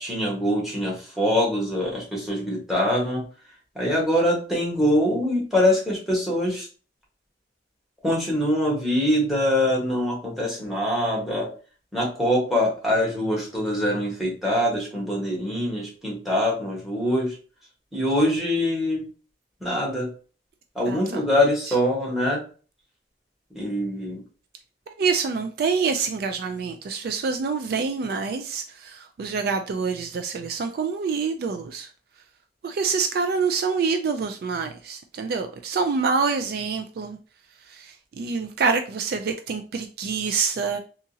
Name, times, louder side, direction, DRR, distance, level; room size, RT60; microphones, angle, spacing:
voice 1, 0.0-3.2 3.7-6.7 8.0-11.5 11.9-17.4 17.9-19.1 19.6-20.1 20.7-22.4 23.5-24.2, left 1 dB, ahead, -3 dB, 1.3 m, -24 dB
voice 2, 20.9-21.2 24.9-31.9 32.6-37.2 37.7-40.8, right 5 dB, 55° right, 7 dB, 0.3 m, -26 dB
3.6 x 2.8 x 2.7 m, 0.38 s
head